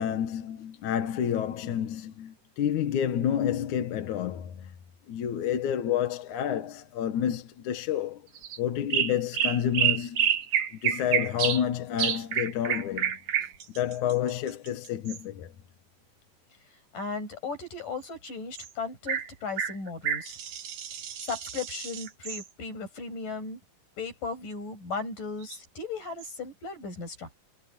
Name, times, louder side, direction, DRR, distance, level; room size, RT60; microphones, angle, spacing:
voice 1, 0.0-4.7 5.1-8.3 8.6-10.4 10.7-13.2 13.7-15.5, left 9 dB, 70° left, 2.7 m, -29 dB
sound 1, 8.4-8.6 8.9-11.6 12.0-15.2 18.6-18.7 19.1-19.3 19.6-22.4 25.4-25.5 26.2-26.3, right 9 dB, 70° right, 3.2 m, -29 dB
voice 2, 16.9-20.4 21.2-23.6 24.0-27.3, left 4 dB, 85° left, 9.2 m, -36 dB
omnidirectional pair, 3.7 m